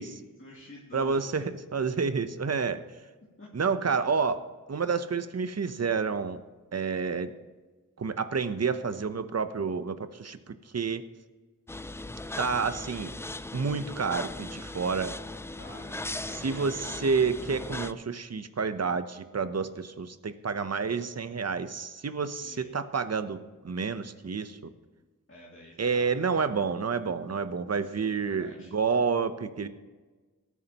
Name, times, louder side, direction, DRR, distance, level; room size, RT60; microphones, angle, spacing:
voice 1, 0.4-1.5 3.4-3.5 15.6-17.3 22.3-22.8 25.3-26.4 27.8-28.7, left 1 dB, 40° left, -5 dB, 2.4 m, -49 dB
voice 2, 0.9-2.8 3.5-4.4 4.7-6.4 6.7-7.3 8.0-10.4 10.7-11.0 12.4-13.1 13.5-15.1 16.4-23.4 23.6-24.6 25.8-29.7, right 5 dB, 50° right, 11 dB, 0.8 m, -29 dB
sound 1, 11.7-17.9, left 2 dB, 10° left, 0.3 m, -38 dB
18.0 x 9.5 x 3.0 m, 1.3 s
wide cardioid pair, 60°, 34 cm